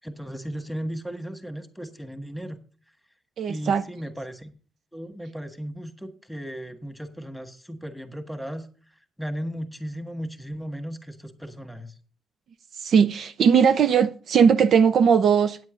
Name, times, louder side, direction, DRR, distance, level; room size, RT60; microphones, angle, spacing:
voice 1, 0.0-2.6 3.5-4.5 4.9-8.7 9.2-11.9, equal, ahead, 1.5 m, -35 dB
voice 2, 3.4-3.8 12.8-15.6, right 7 dB, 60° right, 0.5 m, -19 dB
9.3 x 7.6 x 5.1 m
cardioid pair, 90°, 0 cm